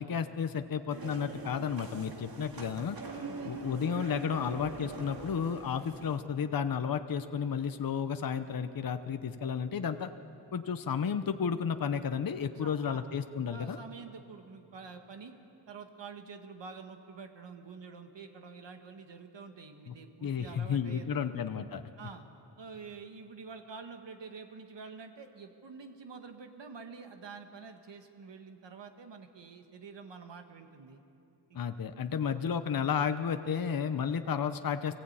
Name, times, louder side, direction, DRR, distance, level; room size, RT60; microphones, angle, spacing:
voice 1, 0.0-3.0 3.4-10.1 10.5-13.8 19.9-20.0 20.2-21.8 31.5-34.9, left 7 dB, 55° left, 8 dB, 0.8 m, -32 dB
sound 1, 0.9-6.2, right 3 dB, 55° right, 2.3 m, -43 dB
voice 2, 12.6-13.0 13.5-15.3 15.7-21.3 22.0-22.2 22.6-31.0 31.5-31.6, right 5 dB, 80° right, 6 dB, 1.7 m, -47 dB
24.5 x 16.0 x 8.8 m, 2.8 s
wide cardioid pair, 120°, 42 cm